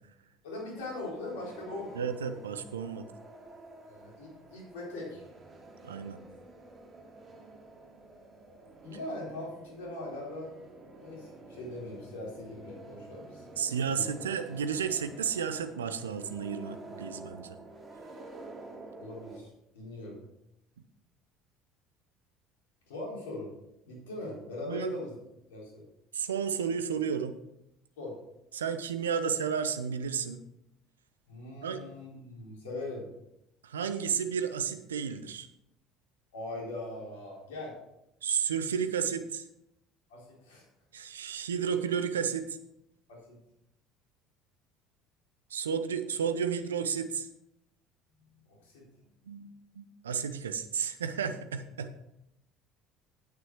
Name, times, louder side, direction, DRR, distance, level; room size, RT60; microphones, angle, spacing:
voice 1, 0.4-2.1 3.9-5.2 8.8-10.5 11.0-14.1 19.0-19.5 19.7-20.1 22.9-23.5 23.9-25.2 25.5-25.8 28.0-28.2 31.3-33.1 36.3-37.7 40.1-40.6 43.1-43.4 48.3-48.8, left 2 dB, 75° left, -3 dB, 4.1 m, -41 dB
sound 1, 0.7-19.4, right 2 dB, 30° right, 3.4 m, -49 dB
voice 2, 2.0-3.1 5.8-6.2 13.6-17.6 24.7-24.9 26.1-27.4 28.5-30.4 31.6-31.8 33.6-35.5 38.2-39.4 40.9-42.6 45.5-47.3 49.3-51.9, right 7 dB, 80° right, 10 dB, 0.7 m, -32 dB
9.5 x 9.3 x 4.7 m, 0.83 s
figure-of-eight pair, 60°, 0 cm